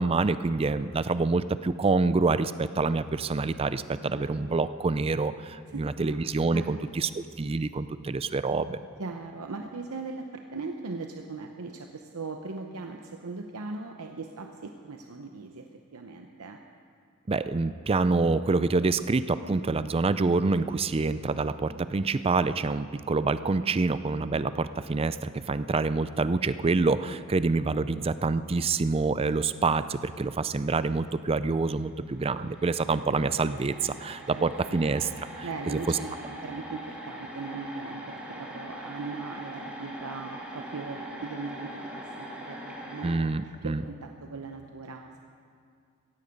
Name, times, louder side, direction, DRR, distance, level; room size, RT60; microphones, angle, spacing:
voice 1, 0.0-8.8 17.3-36.0 43.0-43.8, right 3 dB, 25° right, 14 dB, 0.4 m, -27 dB
voice 2, 5.7-6.2 6.5-6.8 9.0-16.6 34.3-34.8 35.4-45.2, right 3 dB, 80° right, 4 dB, 0.8 m, -39 dB
sound 1, 31.8-31.9 32.1-43.2, right 1 dB, 5° right, 2.0 m, -42 dB
16.5 x 15.5 x 5.3 m, 2.3 s
head